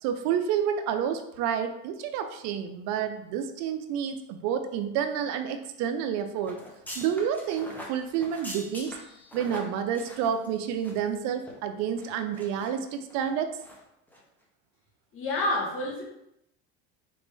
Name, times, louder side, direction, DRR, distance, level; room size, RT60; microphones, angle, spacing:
voice 1, 0.0-6.6 7.0-8.9 9.3-13.5, right 8 dB, 65° right, 8 dB, 0.6 m, -29 dB
sound 1, 6.4-11.1 11.4-11.5 12.0-12.7 13.1-13.3 13.6-13.8 14.1-14.2, equal, 5° left, 0.9 m, -43 dB
voice 2, 15.1-16.0, left 1 dB, 45° left, -2 dB, 1.5 m, -28 dB
4.0 x 3.5 x 3.4 m, 0.82 s
supercardioid pair, 125°, 29 cm